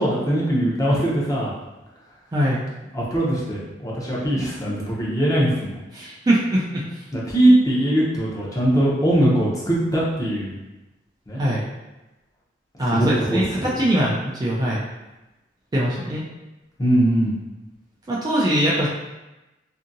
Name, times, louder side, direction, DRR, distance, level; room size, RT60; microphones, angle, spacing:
voice 1, 0.0-1.5 2.9-5.7 7.1-10.6 11.3-11.4 12.9-13.7 16.8-17.4, right 1 dB, 20° left, -6 dB, 0.7 m, -21 dB
voice 2, 2.3-2.6 5.9-6.8 11.4-11.7 12.8-14.8 15.7-16.2 18.1-18.9, right 1 dB, 20° right, -6 dB, 0.4 m, -22 dB
2.7 x 2.6 x 2.5 m, 1.0 s
head